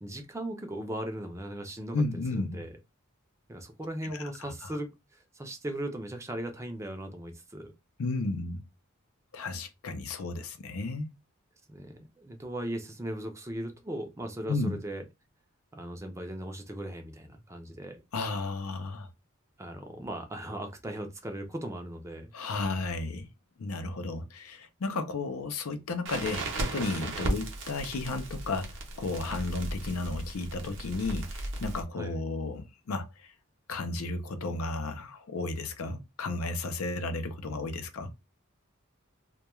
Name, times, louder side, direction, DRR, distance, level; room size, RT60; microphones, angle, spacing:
voice 1, 0.0-2.8 3.5-7.7 11.7-15.0 15.7-18.0 19.6-22.3 31.9-32.2, right 1 dB, 15° right, 0.4 m, -38 dB
voice 2, 1.9-2.6 4.0-4.7 8.0-8.6 9.3-11.1 14.5-14.8 18.1-19.1 22.3-23.3 23.6-28.7 29.0-33.1 33.7-38.1, left 3 dB, 85° left, 0.5 m, -33 dB
Crackle, 26.1-31.8, right 2 dB, 60° right, 0.7 m, -36 dB
2.2 x 2.2 x 2.9 m
head